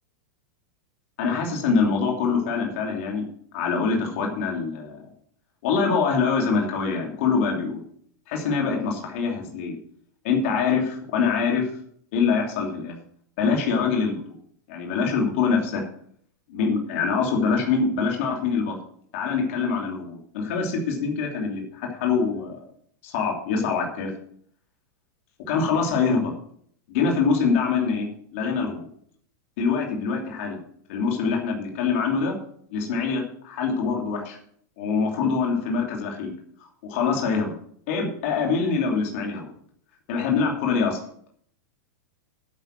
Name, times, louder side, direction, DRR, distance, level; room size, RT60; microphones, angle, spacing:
voice 1, 1.2-3.2 3.5-5.0 5.6-7.8 8.3-9.8 10.2-11.7 12.1-12.9 13.4-14.2 14.7-15.8 16.5-18.8 19.1-22.6 23.0-24.1 25.5-26.3 26.9-28.9 29.6-30.6 30.9-32.3 32.7-34.4 34.8-36.3 36.8-37.5 37.9-39.5 40.1-41.0, left 5 dB, 45° left, 0 dB, 2.9 m, -24 dB
10.5 x 8.9 x 6.2 m, 0.63 s
supercardioid pair, 180°, 10 cm